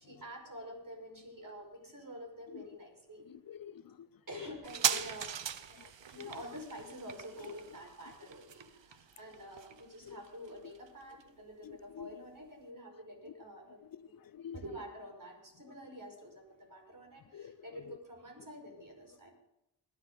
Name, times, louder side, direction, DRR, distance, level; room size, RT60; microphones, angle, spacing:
voice 1, 0.0-3.3 4.3-5.3 6.1-13.8 14.5-19.3, equal, 45° right, 5.5 m, -48 dB
voice 2, 3.3-4.1 4.3-4.5 4.9-5.1 5.7-5.9 6.2-6.4 7.4-7.6 10.0-10.2 11.6-12.1 13.3-13.4 13.8-14.6 15.7-15.8 17.3-18.0, left 8 dB, 50° left, 0.6 m, -48 dB
sound 1, 4.6-11.7 12.0-12.1, right 8 dB, 80° right, 0.9 m, -39 dB
21.0 x 10.5 x 4.0 m
cardioid pair, 45°, 43 cm